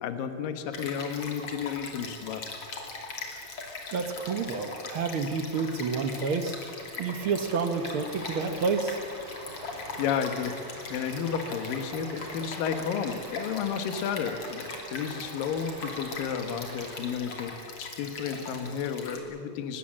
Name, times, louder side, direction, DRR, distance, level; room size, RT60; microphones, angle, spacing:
voice 1, 0.0-2.4 10.0-10.6 10.9-19.8, left 7 dB, 80° left, 8 dB, 3.0 m, -32 dB
Stream, 0.7-19.2, left 3 dB, 45° left, 3.5 m, -40 dB
voice 2, 3.9-9.0, right 5 dB, 70° right, 7 dB, 1.2 m, -29 dB
sound 1, 6.6-17.1, right 2 dB, 40° right, 3.6 m, -46 dB
24.0 x 21.0 x 7.5 m, 2.5 s
omnidirectional pair, 3.9 m